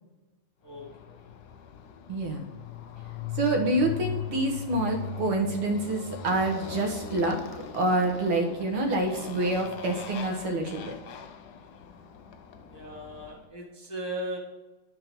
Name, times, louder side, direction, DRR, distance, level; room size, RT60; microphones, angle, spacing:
Motorcycle, 0.7-13.5, left 7 dB, 65° left, 1.1 m, -40 dB
voice 1, 2.1-2.4 3.4-7.4 7.7-11.0, right 2 dB, 90° right, 1 dB, 2.3 m, -27 dB
voice 2, 12.7-14.4, right 1 dB, 15° left, -2 dB, 1.1 m, -37 dB
9.7 x 4.5 x 5.2 m, 1.2 s
omnidirectional pair, 2.3 m